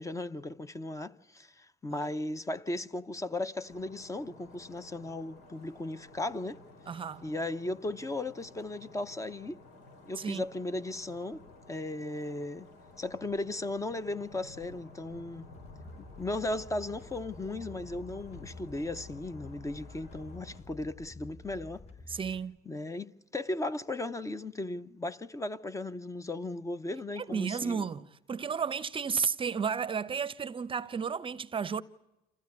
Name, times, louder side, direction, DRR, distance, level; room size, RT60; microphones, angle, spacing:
voice 1, 0.0-6.6 7.2-9.6 10.0-11.4 11.7-12.7 13.0-15.5 16.2-21.8 22.6-27.8, left 2 dB, 20° left, 0.8 m, -36 dB
sound 1, 3.6-20.6, left 2 dB, 85° left, 3.9 m, -53 dB
voice 2, 6.9-7.3 10.2-10.4 22.1-22.6 27.2-31.8, right 6 dB, 30° right, 0.7 m, -33 dB
sound 2, 15.4-22.4, left 2 dB, 40° left, 4.7 m, -50 dB
27.0 x 15.5 x 9.6 m
cardioid pair, 110°, 17 cm